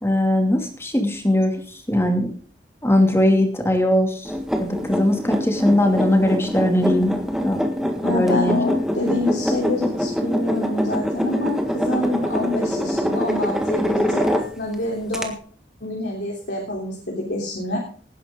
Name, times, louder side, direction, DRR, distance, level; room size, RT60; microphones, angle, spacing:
voice 1, 0.0-2.3 2.8-4.3 4.6-7.1 7.4-7.6 8.0-8.6, left 1 dB, 15° left, 4 dB, 2.6 m, -20 dB
sound 1, 4.2-14.7 15.1-15.2, equal, 5° right, 1.7 m, -24 dB
voice 2, 8.0-15.3 15.8-17.8, left 2 dB, 70° left, -2 dB, 3.5 m, -26 dB
18.5 x 10.5 x 3.8 m, 0.43 s
head